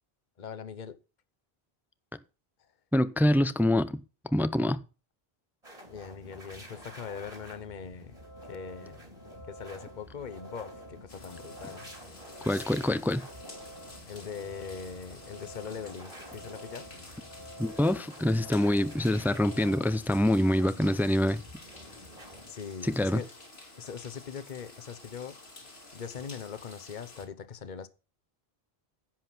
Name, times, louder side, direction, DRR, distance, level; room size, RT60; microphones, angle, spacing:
voice 1, 0.4-1.0 5.9-8.2 8.4-9.0 9.5-11.8 14.1-16.9 22.5-23.3 23.8-25.4 25.9-27.9, left 6 dB, 50° left, 1.0 m, -41 dB
voice 2, 2.9-4.0 4.3-4.8 12.5-13.2 17.6-21.4 22.8-23.2, left 1 dB, 5° right, 0.4 m, -25 dB
sound 1, 5.6-22.5, equal, 40° right, 3.3 m, -50 dB
sound 2, 8.1-19.9, right 1 dB, 85° right, 4.4 m, -50 dB
sound 3, 11.1-27.3, left 2 dB, 80° left, 2.7 m, -51 dB
10.5 x 7.8 x 6.0 m
omnidirectional pair, 1.0 m